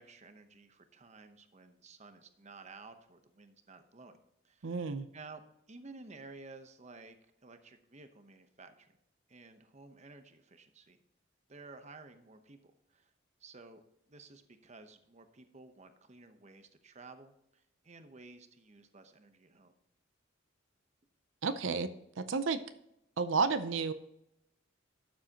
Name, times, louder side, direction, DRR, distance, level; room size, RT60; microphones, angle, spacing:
voice 1, 0.0-4.2 4.4-4.7 5.1-5.4 5.7-7.2 7.4-8.9 9.3-11.0 11.5-13.1 13.4-13.8 14.1-19.7, right 3 dB, 35° right, 8 dB, 0.9 m, -53 dB
voice 2, 4.6-5.1 21.4-21.9 22.2-22.6 23.2-23.9, right 4 dB, 85° right, 11 dB, 0.6 m, -31 dB
12.0 x 7.5 x 2.9 m, 0.81 s
head